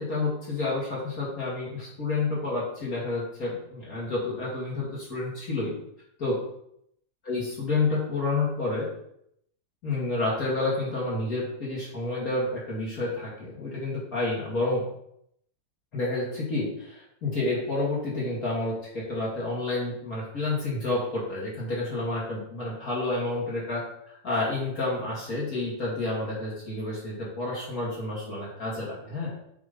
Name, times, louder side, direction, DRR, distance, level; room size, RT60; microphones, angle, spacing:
voice 1, 0.0-5.7 6.2-6.4 7.2-8.9 9.8-14.8 15.9-29.3, left 2 dB, 60° left, -7 dB, 2.7 m, -29 dB
8.1 x 3.7 x 5.1 m, 0.73 s
omnidirectional pair, 1.8 m